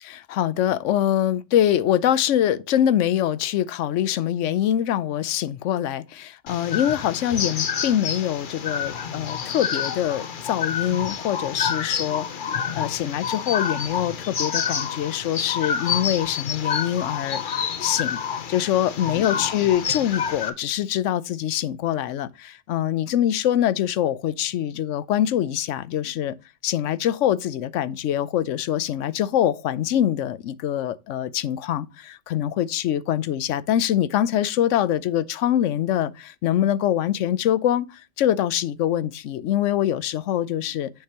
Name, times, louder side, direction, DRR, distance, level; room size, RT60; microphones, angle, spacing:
voice 1, 0.0-12.5 12.7-18.2 18.5-26.3 26.6-40.9, left 11 dB, 90° left, 0.9 m, -24 dB
sound 1, 6.5-20.5, left 7 dB, 50° left, 0.9 m, -28 dB
8.0 x 6.6 x 2.9 m
omnidirectional pair, 1.2 m